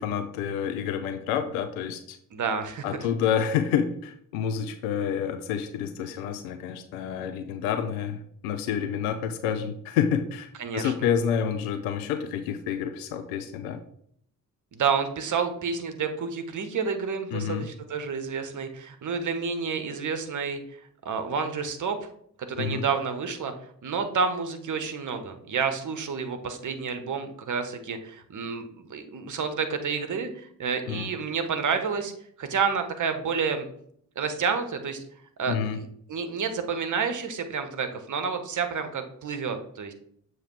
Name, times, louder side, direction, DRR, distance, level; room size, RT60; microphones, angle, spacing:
voice 1, 0.0-2.2 2.8-13.8 17.3-17.7 22.6-22.8 30.9-31.1 35.5-35.8, left 8 dB, 80° left, 9 dB, 0.6 m, -28 dB
voice 2, 2.3-2.8 10.6-10.9 14.7-20.8 21.0-22.1 22.5-23.5 23.8-32.1 32.4-33.7 34.2-35.0 35.4-39.9, right 5 dB, 45° right, 7 dB, 1.1 m, -29 dB
7.0 x 3.2 x 4.6 m, 0.66 s
hypercardioid pair, 40°, 42 cm